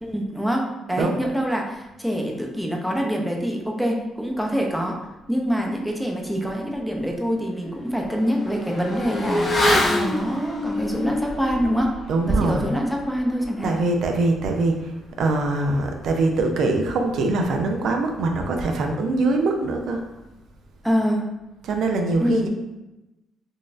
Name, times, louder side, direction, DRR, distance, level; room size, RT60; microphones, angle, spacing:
voice 1, 0.0-5.0 5.3-9.5 9.9-12.0 12.3-13.7 20.8-21.3 22.2-22.5, equal, ahead, 0 dB, 0.6 m, -25 dB
Motorcycle / Accelerating revving vroom, 6.5-6.6 6.9-17.0 17.2-17.3, left 1 dB, 40° left, 0.7 m, -29 dB
voice 2, 12.1-12.7 13.6-20.0 21.6-22.5, right 2 dB, 70° right, 3 dB, 0.4 m, -23 dB
3.8 x 2.4 x 2.5 m, 0.99 s
cardioid pair, 90°, 0 cm